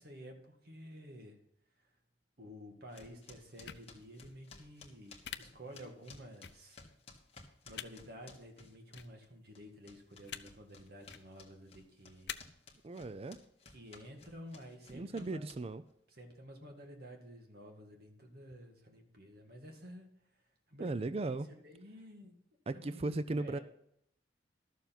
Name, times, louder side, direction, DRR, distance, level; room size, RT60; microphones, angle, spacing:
voice 1, 0.0-1.4 1.8-1.9 2.4-6.8 7.6-12.4 13.7-15.5 16.1-20.1 20.3-20.4 20.7-22.3 22.7-23.6, equal, 55° right, 3 dB, 2.0 m, -52 dB
sound 1, 2.9-9.3 9.5-15.9, left 4 dB, 35° left, 1.6 m, -57 dB
sound 2, 3.6-3.8 5.2-5.4 6.4-6.5 7.7-7.9 8.9-9.1 10.2-10.4 11.0-11.2 12.3-12.4, left 10 dB, 60° left, 0.5 m, -43 dB
voice 2, 12.8-13.4 14.9-15.8 20.8-21.5 22.7-23.6, right 2 dB, 30° right, 14 dB, 0.4 m, -37 dB
12.5 x 7.0 x 5.9 m, 0.74 s
head